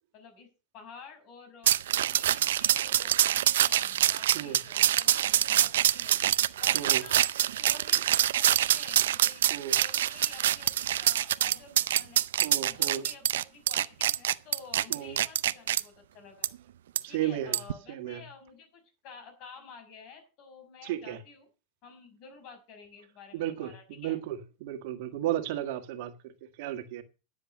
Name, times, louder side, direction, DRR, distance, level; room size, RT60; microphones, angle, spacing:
voice 1, 0.1-0.5 0.7-1.8 2.1-6.3 6.6-9.4 9.8-12.2 12.6-16.5 17.1-21.5 21.8-24.2, left 5 dB, 55° left, 5.8 m, -50 dB
sound 1, 1.7-15.8 16.4-16.5 17.0-17.1 17.5-17.7, right 12 dB, 85° right, 0.5 m, -25 dB
voice 2, 12.4-13.0 14.9-15.2 17.0-17.6 17.9-18.2 20.8-21.2 23.3-26.3 26.6-27.0, right 12 dB, 65° right, 1.7 m, -34 dB
11.0 x 7.6 x 7.5 m
supercardioid pair, 115°, 0 cm